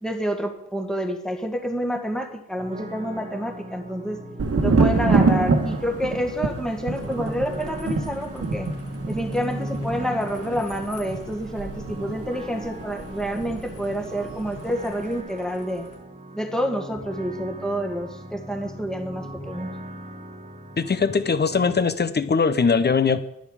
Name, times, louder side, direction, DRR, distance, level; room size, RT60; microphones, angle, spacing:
voice 1, 0.0-4.2 4.6-8.7 9.1-15.9 16.3-19.7, equal, ahead, 1.8 m, -28 dB
sound 1, 2.6-21.7, right 1 dB, 20° right, 1.8 m, -38 dB
Thunder, 4.4-14.0 14.3-15.0, right 4 dB, 45° right, 1.4 m, -26 dB
sound 2, 6.9-16.0, left 3 dB, 70° left, 3.4 m, -51 dB
voice 2, 20.8-23.2, left 5 dB, 30° left, 0.8 m, -21 dB
11.0 x 10.5 x 4.9 m
cardioid pair, 100°, 32 cm